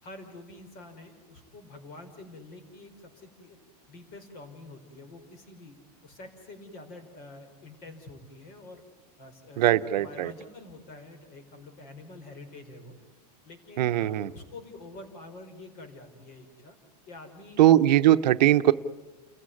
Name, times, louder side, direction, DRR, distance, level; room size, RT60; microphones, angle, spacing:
voice 1, 0.0-3.6 3.9-5.8 6.0-8.8 9.2-13.0 13.4-16.8 17.1-17.6, left 2 dB, 45° left, 7 dB, 5.1 m, -47 dB
voice 2, 9.6-10.3 13.8-14.3 17.6-18.7, right 13 dB, 85° right, 12 dB, 0.9 m, -20 dB
29.5 x 15.0 x 9.8 m, 1.3 s
supercardioid pair, 140°, 21 cm